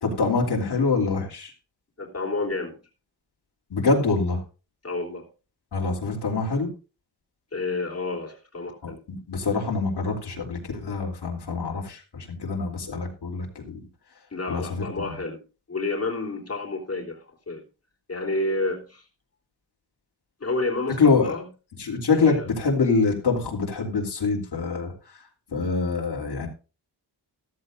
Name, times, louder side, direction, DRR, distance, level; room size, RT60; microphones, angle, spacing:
voice 1, 0.0-1.5 3.7-4.4 5.7-6.7 8.8-13.8 14.5-15.1 21.0-21.3 21.8-24.9 25.5-26.5, left 4 dB, 70° left, -1 dB, 3.1 m, -25 dB
voice 2, 2.0-2.8 4.8-5.3 7.5-9.0 14.3-17.6 18.1-19.0 20.4-21.5 22.1-22.5, left 2 dB, 35° left, -1 dB, 3.3 m, -30 dB
14.5 x 14.0 x 2.6 m, 0.34 s
wide cardioid pair, 120°, 42 cm